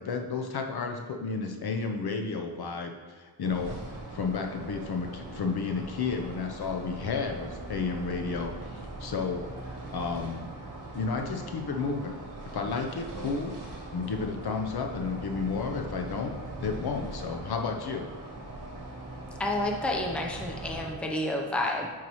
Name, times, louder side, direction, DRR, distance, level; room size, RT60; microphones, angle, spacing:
voice 1, 0.0-10.5 10.9-12.1 12.5-13.5 13.9-16.3 16.6-18.1, left 4 dB, 55° left, 3 dB, 0.8 m, -32 dB
sound 1, 3.4-20.9, right 2 dB, 40° right, 1.4 m, -41 dB
voice 2, 19.4-21.9, left 1 dB, ahead, 1 dB, 0.7 m, -30 dB
9.4 x 4.7 x 3.1 m, 1.4 s
cardioid pair, 105°, 47 cm